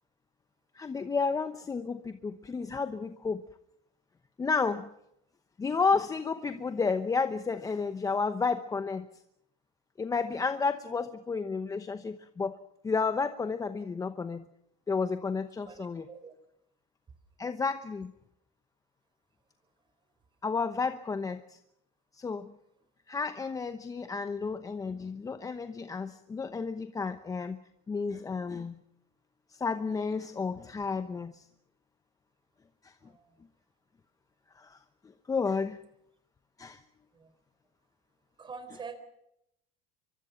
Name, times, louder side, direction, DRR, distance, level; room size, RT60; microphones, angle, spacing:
voice 1, 0.7-3.4 4.4-4.9 5.6-9.1 10.0-12.6 12.8-14.5 14.9-16.1 17.4-18.1 20.4-21.6 22.1-22.5 23.1-27.6 27.9-28.8 29.5-31.5 32.8-32.9 34.6-34.8 35.3-35.8 36.6-36.8, left 4 dB, 15° left, 10 dB, 0.9 m, -31 dB
voice 2, 15.7-16.3 33.0-33.2 37.1-37.3 38.4-39.0, right 5 dB, 25° right, 11 dB, 4.0 m, -45 dB
25.0 x 24.0 x 5.8 m, 0.79 s
cardioid pair, 135°, 19 cm